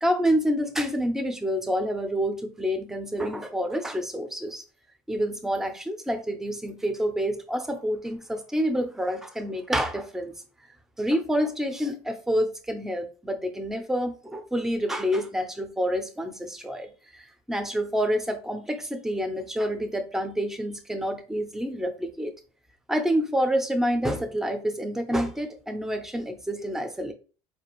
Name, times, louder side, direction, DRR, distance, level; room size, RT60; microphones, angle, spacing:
voice 1, 0.0-4.6 5.1-10.3 11.0-22.3 22.9-27.1, equal, 5° right, 0.4 m, -28 dB
4.6 x 2.4 x 2.9 m
cardioid pair, 165°, 11 cm